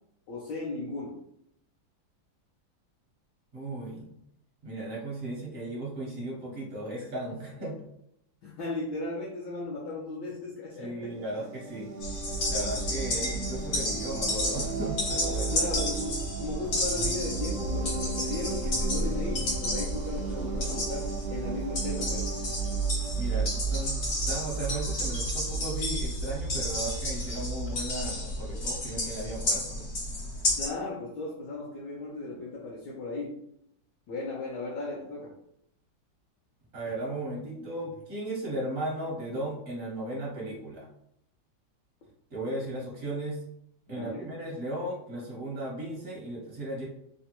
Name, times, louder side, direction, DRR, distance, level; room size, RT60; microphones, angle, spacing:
voice 1, 0.3-1.2 8.4-11.1 15.5-22.3 30.6-33.4 34.1-35.3 43.9-44.3, left 2 dB, 70° left, -4 dB, 1.1 m, -36 dB
voice 2, 3.5-4.1 4.6-7.9 10.8-15.6 23.1-24.0 24.3-29.9 36.7-40.9 42.3-43.4 43.9-46.8, right 1 dB, 50° right, -4 dB, 0.7 m, -36 dB
sound 1, 11.1-24.6, right 4 dB, 80° right, 1.3 m, -38 dB
sound 2, 12.0-30.7, equal, 55° left, 1.0 m, -31 dB
3.3 x 2.1 x 2.8 m, 0.75 s
omnidirectional pair, 2.1 m